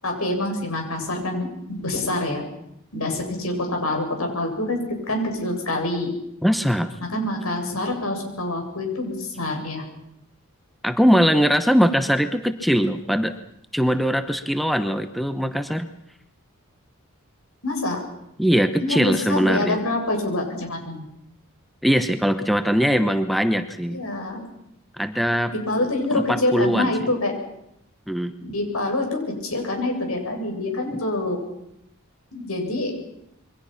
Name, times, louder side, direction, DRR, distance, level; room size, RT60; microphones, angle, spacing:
voice 1, 0.0-2.4 2.9-4.8 5.1-6.1 7.1-9.8 17.6-18.0 18.8-21.0 23.9-24.4 25.5-27.3 28.4-31.4 32.3-32.9, left 2 dB, 80° left, 3 dB, 7.5 m, -26 dB
voice 2, 6.4-6.9 10.8-13.3 13.7-15.9 18.4-19.8 21.8-24.0 25.0-25.5 26.1-26.9 28.1-28.3, equal, ahead, 9 dB, 1.0 m, -21 dB
28.0 x 23.5 x 5.9 m, 0.78 s
head